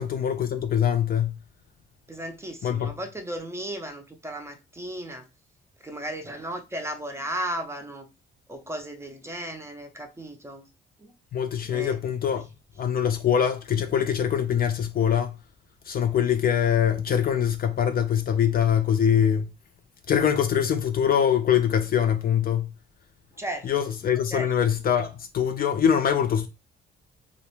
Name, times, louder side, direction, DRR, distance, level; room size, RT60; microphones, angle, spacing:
voice 1, 0.0-1.4 2.6-2.9 11.3-12.5 12.8-15.4 15.9-19.5 20.1-22.7 23.6-26.5, left 8 dB, 50° left, 0.4 m, -23 dB
voice 2, 2.1-5.3 5.8-8.1 8.5-10.6 11.0-11.1 11.7-12.0 23.4-23.7 24.3-24.5, right 1 dB, 15° right, 0.5 m, -35 dB
2.4 x 2.1 x 3.0 m
cardioid pair, 90°, 20 cm